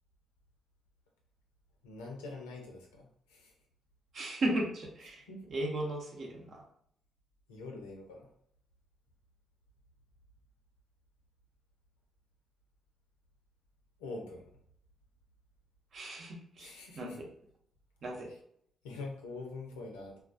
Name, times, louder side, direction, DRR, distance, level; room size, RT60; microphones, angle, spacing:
voice 1, 1.8-3.5 5.3-5.5 7.5-8.3 14.0-14.4 16.6-17.2 18.8-20.2, left 3 dB, 90° left, 0 dB, 0.5 m, -44 dB
voice 2, 4.1-5.2 5.5-6.6 15.9-17.1 18.0-18.3, right 1 dB, 60° right, 0 dB, 0.7 m, -36 dB
2.2 x 2.2 x 2.5 m, 0.67 s
hypercardioid pair, 45°, 0 cm